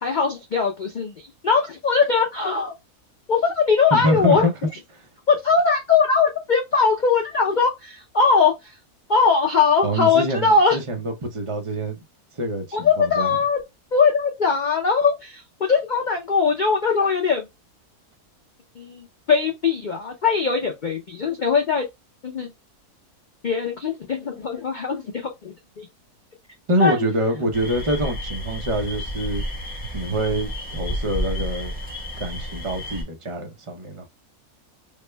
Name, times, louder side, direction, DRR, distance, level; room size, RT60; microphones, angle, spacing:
voice 1, 0.0-2.7 3.3-4.5 5.3-8.8 9.1-10.8 12.7-13.6 13.9-17.5 18.8-21.9 22.2-22.5 23.4-25.9 26.8-27.0, left 5 dB, 90° left, 0.4 m, -21 dB
voice 2, 3.9-4.5 4.9-5.0 9.8-12.0 12.4-13.3 26.7-29.4 29.9-31.7 32.2-34.1, right 1 dB, 50° right, 0.3 m, -25 dB
sound 1, 27.5-33.0, equal, 5° right, 0.9 m, -31 dB
3.4 x 2.2 x 3.2 m
omnidirectional pair, 1.7 m